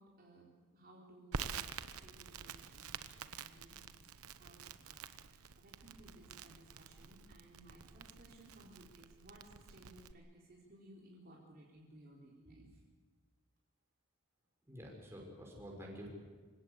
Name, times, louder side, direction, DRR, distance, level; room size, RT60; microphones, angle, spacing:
voice 1, 0.0-4.0 4.4-12.8, right 1 dB, 40° right, -3 dB, 4.2 m, -60 dB
Crackle, 1.3-10.1, right 6 dB, 80° right, 1.0 m, -48 dB
voice 2, 14.7-16.1, equal, 10° right, -2 dB, 6.1 m, -49 dB
27.0 x 17.0 x 8.4 m, 1.5 s
head